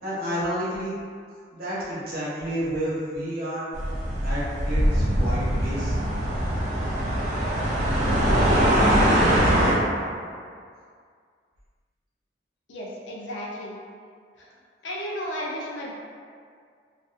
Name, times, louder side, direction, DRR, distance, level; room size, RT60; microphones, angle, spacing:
voice 1, 0.0-1.0 1.5-3.7 4.2-5.9, equal, 55° right, -9 dB, 0.8 m, -30 dB
sound 1, 3.7-9.7, equal, 40° right, 0.5 m, -22 dB
voice 2, 12.7-13.7 14.4-14.5 14.8-15.9, equal, 85° left, -3 dB, 0.5 m, -33 dB
2.5 x 2.3 x 2.4 m, 2.1 s
head